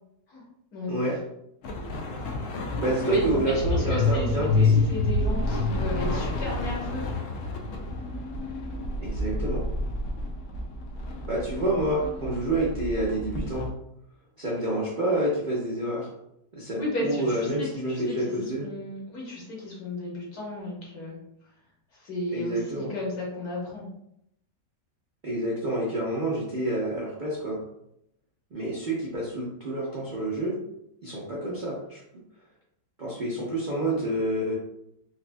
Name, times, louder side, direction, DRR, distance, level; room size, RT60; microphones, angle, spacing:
voice 1, 0.9-1.2 2.8-4.8 9.0-9.6 11.3-13.7 14.4-16.1 16.5-18.7 22.3-22.9 25.2-27.6 28.5-30.6 31.0-32.0 33.0-34.5, right 1 dB, 60° right, -6 dB, 0.5 m, -28 dB
sound 1, 1.6-13.7, left 3 dB, 85° left, 0.6 m, -28 dB
voice 2, 3.0-7.1 16.8-18.3 18.6-21.2 22.0-23.9, left 2 dB, 60° left, -4 dB, 1.5 m, -34 dB
4.0 x 2.5 x 2.2 m, 0.76 s
omnidirectional pair, 1.9 m